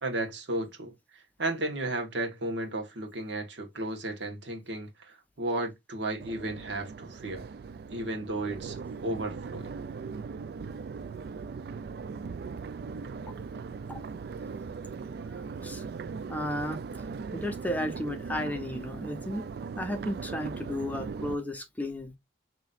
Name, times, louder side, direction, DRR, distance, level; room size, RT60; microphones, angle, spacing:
voice 1, 0.0-7.4 7.9-9.8, right 2 dB, 80° right, 1.3 m, -34 dB
Crowd, 6.2-21.3, right 5 dB, 55° right, 0.3 m, -39 dB
voice 2, 16.3-16.8 17.3-19.4 19.8-22.2, left 1 dB, 10° left, 0.8 m, -33 dB
5.5 x 3.0 x 2.4 m
head